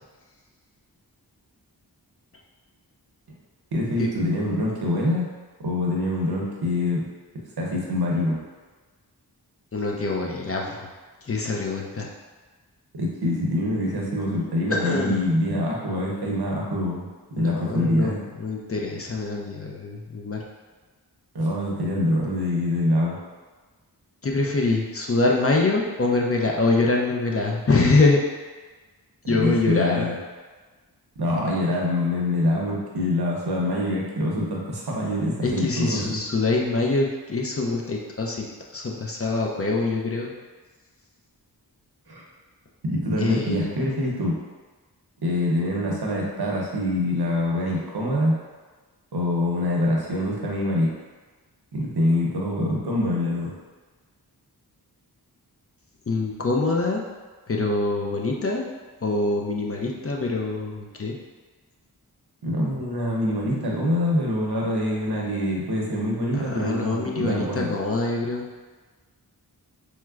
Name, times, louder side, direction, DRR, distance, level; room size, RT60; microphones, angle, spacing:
voice 1, 3.7-5.3 5.6-7.1 7.6-8.4 12.9-18.2 21.3-23.2 29.2-30.2 31.2-36.2 42.1-42.2 42.8-44.4 45.2-48.4 49.1-50.9 51.7-53.5 62.4-67.7, left 1 dB, 75° right, -3 dB, 0.7 m, -25 dB
voice 2, 9.7-10.8 11.2-12.1 14.7-15.2 17.4-20.4 24.2-28.2 29.3-30.1 35.4-38.5 38.7-40.3 43.2-43.7 56.1-57.1 57.5-58.6 59.0-61.2 66.3-68.5, left 3 dB, 35° left, -1 dB, 0.4 m, -24 dB
4.5 x 2.0 x 2.3 m, 1.3 s
wide cardioid pair, 65°, 39 cm